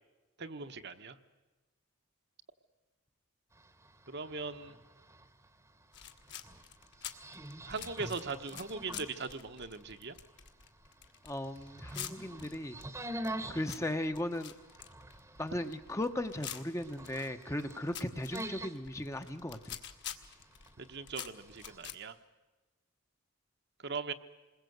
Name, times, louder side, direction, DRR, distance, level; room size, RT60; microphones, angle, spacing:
voice 1, 0.4-1.2 4.1-4.8 7.6-10.1 20.8-22.1 23.8-24.1, right 4 dB, 50° right, 7 dB, 1.1 m, -40 dB
sound 1, 3.5-21.8, right 1 dB, 15° right, 1.0 m, -47 dB
sound 2, 5.9-22.0, left 10 dB, 55° left, 1.5 m, -48 dB
voice 2, 11.2-12.8 13.5-14.5 15.4-19.8, left 1 dB, 15° left, 8 dB, 0.8 m, -37 dB
28.0 x 21.0 x 7.9 m, 1.2 s
head